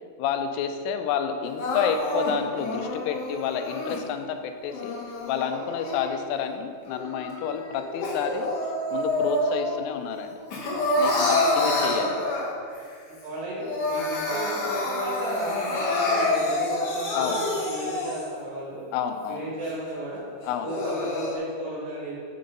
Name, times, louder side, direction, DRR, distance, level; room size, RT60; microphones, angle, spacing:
voice 1, 0.2-5.0 5.3-8.5 8.9-10.3 11.0-12.1 17.1-17.4 18.9-19.4 20.4-20.7, left 8 dB, 90° left, 7 dB, 3.1 m, -30 dB
Crying sobbing, 1.6-4.0 4.6-6.4 6.9-9.8 10.1-12.8 13.2-13.3 13.6-18.4 18.9-19.0 19.6-19.7 20.4-21.4, left 2 dB, 70° left, 1.9 m, -28 dB
voice 2, 11.3-12.1 13.0-18.8 19.3-20.2 20.6-22.2, right 1 dB, 75° right, -7 dB, 4.5 m, -34 dB
8.5 x 5.3 x 3.8 m, 2.1 s
omnidirectional pair, 5.6 m